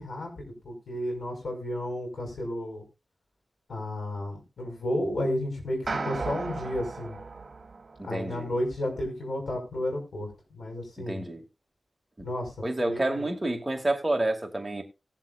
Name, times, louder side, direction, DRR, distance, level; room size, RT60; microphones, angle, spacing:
voice 1, 0.0-2.8 3.7-7.2 8.0-11.2 12.2-12.5 12.8-13.3, left 1 dB, 85° left, 5.4 m, -32 dB
sound 1, 5.9-8.3, right 3 dB, 60° right, 1.5 m, -35 dB
voice 2, 8.0-8.5 11.0-11.4 12.2-12.3 12.6-14.8, right 1 dB, 20° right, 2.3 m, -29 dB
19.0 x 7.5 x 2.5 m
wide cardioid pair, 70°, 0 cm